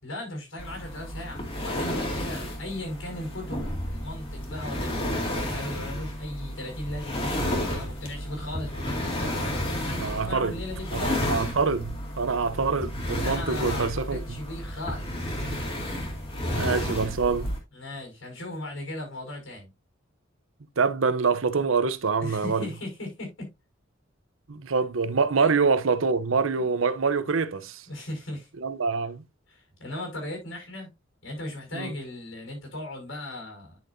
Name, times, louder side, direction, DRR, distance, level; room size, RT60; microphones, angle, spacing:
voice 1, 0.0-7.3 7.7-11.2 13.1-15.2 17.7-19.7 22.2-23.5 25.4-25.5 27.9-28.5 29.5-30.9 31.2-33.8, left 1 dB, 75° left, 6.0 m, -37 dB
sound 1, 0.6-17.6, left 1 dB, 30° left, 2.3 m, -32 dB
voice 2, 9.9-10.5 10.9-14.2 16.5-17.5 20.8-22.7 24.5-27.8 28.6-29.2 31.7-31.9, right 4 dB, 80° right, 0.8 m, -25 dB
10.5 x 6.5 x 2.6 m
head